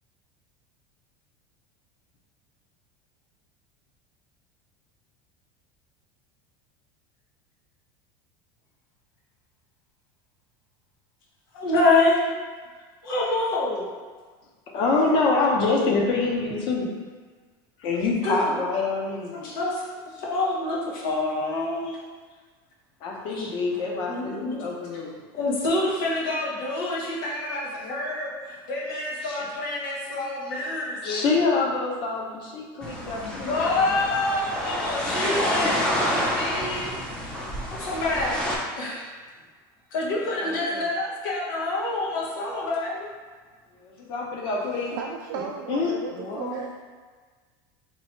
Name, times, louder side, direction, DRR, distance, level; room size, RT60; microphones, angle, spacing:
voice 1, 11.5-12.3 13.0-13.9 18.2-18.5 19.3-19.8 20.2-22.0 23.4-23.5 24.1-24.6 25.3-31.2 33.2-36.9 37.6-38.4 38.8-39.1 39.9-43.1 46.1-46.6, left 2 dB, 85° left, -5 dB, 1.2 m, -27 dB
voice 2, 14.7-16.9 17.8-19.5 23.0-25.2 29.2-29.5 30.5-35.7 40.2-40.9 43.7-45.0 45.7-45.9, left 3 dB, 45° left, -1 dB, 0.8 m, -27 dB
sound 1, 32.8-38.6, equal, 5° left, 0.6 m, -28 dB
voice 3, 45.0-46.7, right 7 dB, 70° right, 0 dB, 0.4 m, -35 dB
3.0 x 2.8 x 4.3 m, 1.5 s
supercardioid pair, 140°, 11 cm